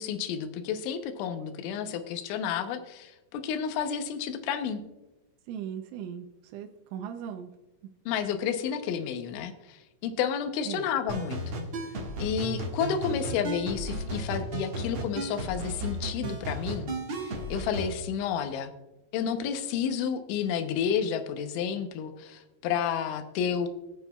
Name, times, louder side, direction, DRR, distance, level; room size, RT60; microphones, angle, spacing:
voice 1, 0.0-4.8 8.1-11.6 12.2-18.7 19.1-23.7, left 7 dB, 85° left, 8 dB, 3.2 m, -31 dB
voice 2, 5.5-6.3 6.5-7.5 10.6-10.9, right 8 dB, 85° right, 5 dB, 3.1 m, -38 dB
sound 1, 11.1-17.9, right 1 dB, 65° right, 1.3 m, -34 dB
21.0 x 7.0 x 2.3 m, 1.0 s
omnidirectional pair, 5.3 m